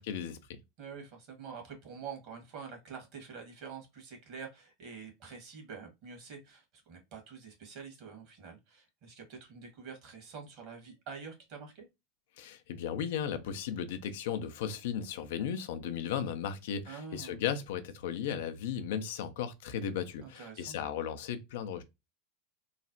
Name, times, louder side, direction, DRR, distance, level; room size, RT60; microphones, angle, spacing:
voice 1, 0.0-0.6 12.4-21.8, left 8 dB, 70° left, 0.4 m, -36 dB
voice 2, 0.8-11.9 16.8-17.4 20.2-20.8, right 5 dB, 55° right, 1.3 m, -46 dB
3.1 x 2.0 x 2.6 m
hypercardioid pair, 90°, 0 cm